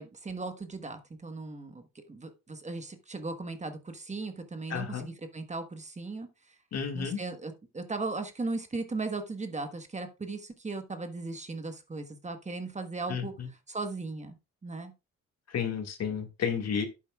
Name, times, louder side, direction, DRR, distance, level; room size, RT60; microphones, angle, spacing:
voice 1, 0.0-6.5 6.9-14.4 14.6-14.9, right 3 dB, 25° right, 8 dB, 1.2 m, -37 dB
voice 2, 4.7-5.1 6.7-7.2 13.1-13.5 15.5-16.9, left 7 dB, 60° left, 5 dB, 1.9 m, -32 dB
11.0 x 8.5 x 2.3 m, 0.26 s
cardioid pair, 90°, 30 cm